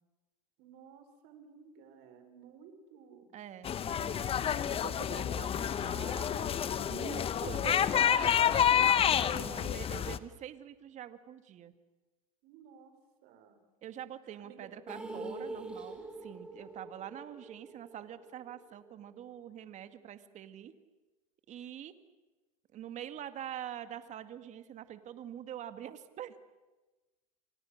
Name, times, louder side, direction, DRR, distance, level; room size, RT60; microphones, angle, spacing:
voice 1, 0.6-3.3 4.7-6.8 12.4-12.9 13.2-13.6 14.4-14.7, right 7 dB, 55° right, 8 dB, 5.3 m, -51 dB
voice 2, 3.3-4.7 6.9-11.7 13.8-20.7 21.5-21.9 22.7-26.4, right 10 dB, 40° right, 10 dB, 2.2 m, -45 dB
sound 1, 3.6-10.2, left 9 dB, 30° left, 1.2 m, -29 dB
sound 2, 14.9-19.0 19.3-19.4 19.7-19.8, right 2 dB, 5° right, 5.2 m, -44 dB
29.5 x 24.5 x 6.7 m, 1.2 s
hypercardioid pair, 100°, 19 cm